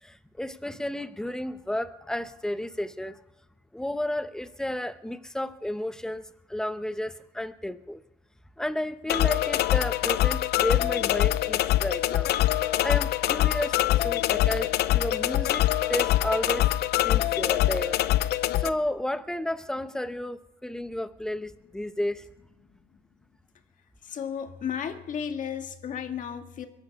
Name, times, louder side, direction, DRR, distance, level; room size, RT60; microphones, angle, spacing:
voice 1, 0.0-3.2 3.7-8.0 8.6-12.3 12.8-16.7 17.0-18.0 18.6-22.3, left 1 dB, 5° left, 0.8 m, -32 dB
sound 1, 9.1-18.7, left 14 dB, 75° left, 0.6 m, -24 dB
voice 2, 24.0-26.7, left 8 dB, 50° left, 1.7 m, -33 dB
22.5 x 10.5 x 5.3 m
cardioid pair, 110°, 17 cm